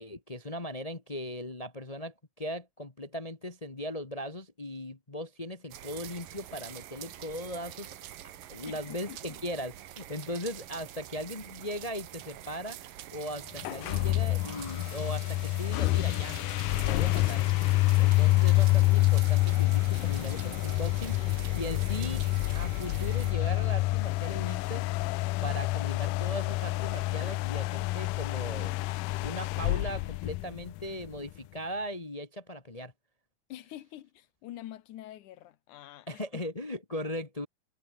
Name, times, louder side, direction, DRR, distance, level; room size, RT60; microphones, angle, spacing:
voice 1, 0.0-7.9 8.5-16.4 16.8-17.5 18.0-22.2 22.5-24.9 25.4-28.8 29.2-32.9 36.1-37.5, left 1 dB, 55° left, 0.4 m, -38 dB
sound 1, 5.7-23.4, right 12 dB, 90° right, 3.2 m, -46 dB
voice 2, 8.9-9.4 33.5-36.2, left 13 dB, 70° left, 2.5 m, -46 dB
sound 2, 13.6-31.1, left 19 dB, 90° left, 2.2 m, -27 dB
omnidirectional pair, 3.8 m